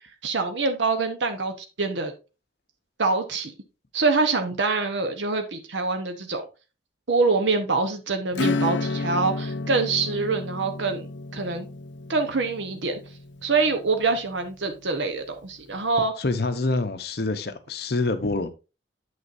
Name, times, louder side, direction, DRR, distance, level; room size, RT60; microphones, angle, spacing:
voice 1, 0.2-2.1 3.0-3.5 3.9-6.5 7.1-11.1 11.3-11.7 12.1-13.0 13.4-16.1, right 4 dB, 85° right, 1.0 m, -25 dB
Acoustic guitar / Strum, 8.3-14.6, left 3 dB, 90° left, 0.6 m, -31 dB
voice 2, 16.2-18.5, left 3 dB, 60° left, 0.8 m, -26 dB
8.9 x 6.4 x 2.6 m
head